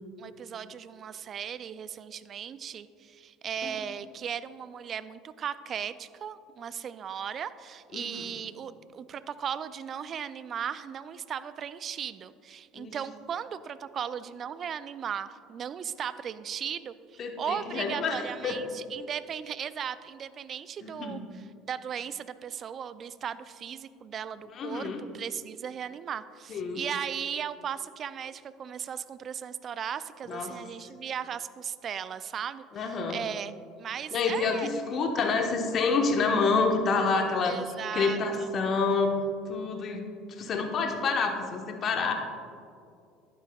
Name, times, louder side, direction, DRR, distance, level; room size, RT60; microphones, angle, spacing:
voice 1, 0.0-21.2 21.7-33.5 33.8-34.7 37.4-38.5, right 8 dB, 45° right, 15 dB, 0.3 m, -37 dB
voice 2, 7.9-8.3 12.7-12.9 17.2-18.6 20.8-21.2 24.5-25.0 26.5-26.8 30.3-30.5 32.7-33.2 34.1-39.1 39.5-42.1, left 4 dB, 45° left, 4 dB, 1.1 m, -28 dB
11.5 x 9.1 x 2.4 m, 2.5 s
hypercardioid pair, 70°, 0 cm